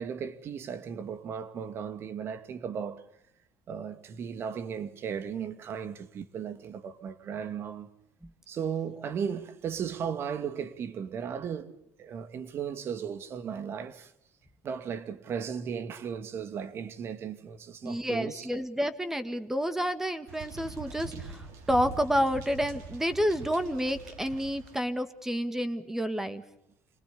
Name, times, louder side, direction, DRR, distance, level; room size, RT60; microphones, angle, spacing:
voice 1, 0.0-3.0 3.7-7.9 8.5-14.1 14.6-18.5, right 7 dB, 50° right, 2.3 m, -36 dB
voice 2, 17.8-26.4, equal, 5° right, 2.0 m, -29 dB
sound 1, 20.3-24.8, right 6 dB, 75° right, 5.9 m, -43 dB
27.0 x 19.5 x 8.6 m
supercardioid pair, 100°, 5 cm